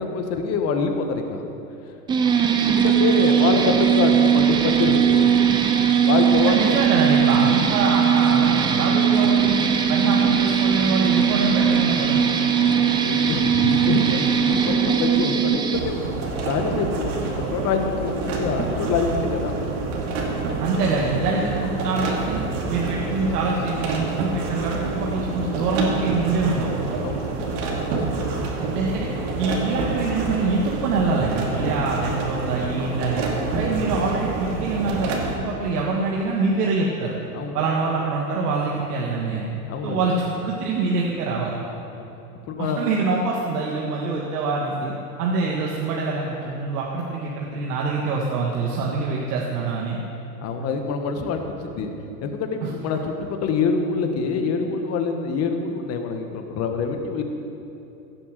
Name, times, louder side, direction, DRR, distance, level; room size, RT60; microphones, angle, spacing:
voice 1, 0.0-1.4 2.7-5.3 6.0-6.8 12.6-16.0 16.3-19.5 27.0-27.3 37.3-37.6 39.7-40.2 41.9-42.0 42.5-42.9 50.4-51.9 52.2-57.2, left 5 dB, 30° left, 5 dB, 1.4 m, -25 dB
sound 1, 2.1-15.8, right 8 dB, 10° right, 0.4 m, -19 dB
voice 2, 6.4-9.6 9.9-12.2 20.6-22.4 22.7-26.7 28.6-29.1 29.4-33.2 33.6-37.2 37.5-39.5 39.8-41.6 42.6-50.0 52.6-52.7, right 3 dB, 75° right, -2 dB, 1.9 m, -25 dB
sound 2, 15.7-35.4, right 3 dB, 50° right, 2.4 m, -27 dB
16.5 x 7.2 x 6.7 m, 2.9 s
supercardioid pair, 130°, 46 cm